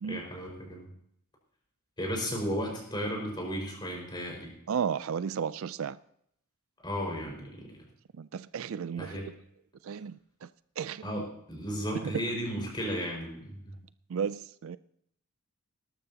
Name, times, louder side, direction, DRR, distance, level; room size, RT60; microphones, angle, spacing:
voice 1, 0.1-0.9 2.0-4.5 6.8-7.7 9.0-9.3 11.0-13.7, equal, 20° left, 5.0 m, -34 dB
voice 2, 4.7-6.0 8.2-9.2 9.8-10.5 10.8-11.2 12.0-12.1 14.1-14.8, right 7 dB, 65° right, 0.4 m, -34 dB
19.5 x 12.5 x 2.8 m
head